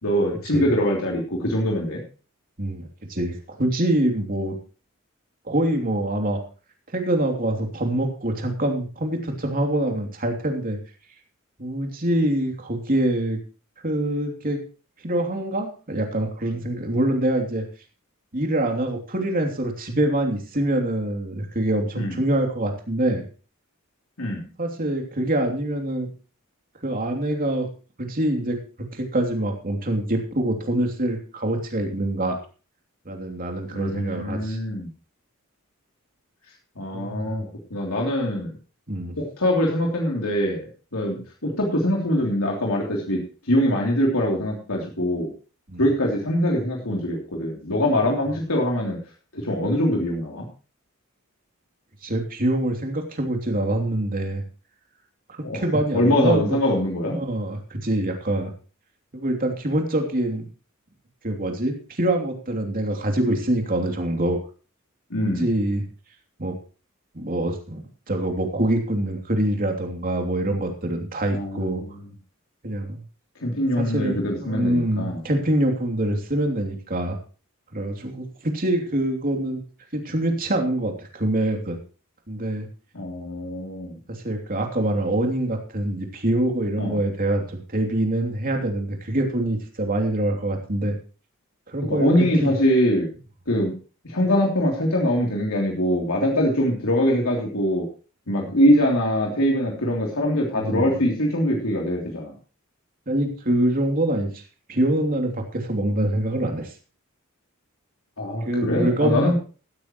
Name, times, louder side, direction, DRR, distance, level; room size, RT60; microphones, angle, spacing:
voice 1, 0.0-2.0 22.0-22.2 24.2-24.5 33.7-34.9 36.8-38.5 39.2-40.6 40.9-43.2 43.5-45.3 45.8-49.0 49.3-50.5 55.4-55.6 55.9-57.2 65.1-65.5 71.3-71.9 73.4-75.2 82.9-84.0 86.8-87.0 91.9-93.1 93.5-93.7 94.0-97.8 98.3-102.3 108.2-109.3, equal, 80° left, -1 dB, 3.2 m, -23 dB
voice 2, 2.6-4.6 5.5-6.4 6.9-10.8 11.6-13.4 13.8-14.6 15.0-17.7 18.3-23.2 24.6-26.1 26.8-27.7 28.0-28.6 28.9-32.4 33.0-34.6 36.9-37.4 38.9-39.1 45.7-45.8 52.0-54.4 55.3-56.6 57.1-58.5 59.1-60.5 61.2-64.4 65.2-65.8 66.4-66.5 67.1-71.8 72.6-73.0 73.8-77.2 77.7-79.6 79.9-81.8 82.3-82.7 84.2-91.0 91.7-92.5 100.5-100.9 103.1-104.4 104.7-106.7 108.4-109.3, right 1 dB, 40° right, 3 dB, 2.9 m, -25 dB
16.0 x 12.5 x 3.1 m, 0.35 s
head